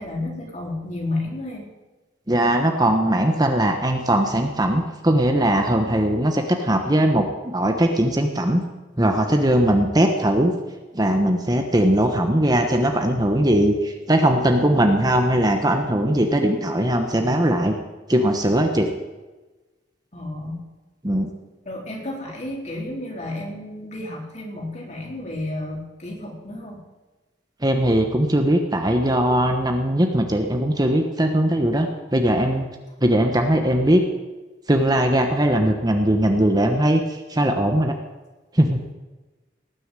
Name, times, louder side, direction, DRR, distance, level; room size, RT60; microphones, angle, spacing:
voice 1, 0.0-1.7 20.1-20.6 21.6-26.8, left 2 dB, 40° left, -2 dB, 4.2 m, -31 dB
voice 2, 2.3-8.6 9.0-10.5 10.9-17.7 18.1-18.9 21.0-21.3 27.6-32.7 33.0-34.0 34.7-37.9 38.5-38.8, right 1 dB, 20° right, 4 dB, 1.1 m, -20 dB
19.0 x 6.9 x 9.1 m, 1.2 s
head